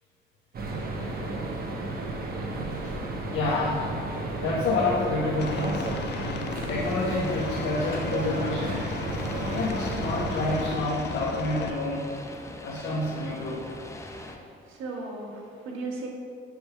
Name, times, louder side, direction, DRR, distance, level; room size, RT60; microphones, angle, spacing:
sound 1, 0.5-10.8, right 2 dB, 50° right, 1.1 m, -33 dB
voice 1, 3.3-3.9 4.4-5.9 6.7-9.0 9.4-12.1 12.6-13.6, left 2 dB, 85° left, -5 dB, 1.2 m, -28 dB
Aircraft, 5.4-11.7, left 6 dB, 60° left, 0.6 m, -36 dB
sound 2, 6.8-14.4, left 1 dB, 15° left, 0.7 m, -42 dB
voice 2, 14.0-16.1, right 3 dB, 85° right, -1 dB, 1.4 m, -37 dB
7.8 x 3.4 x 5.7 m, 2.5 s
cardioid pair, 90°, 20 cm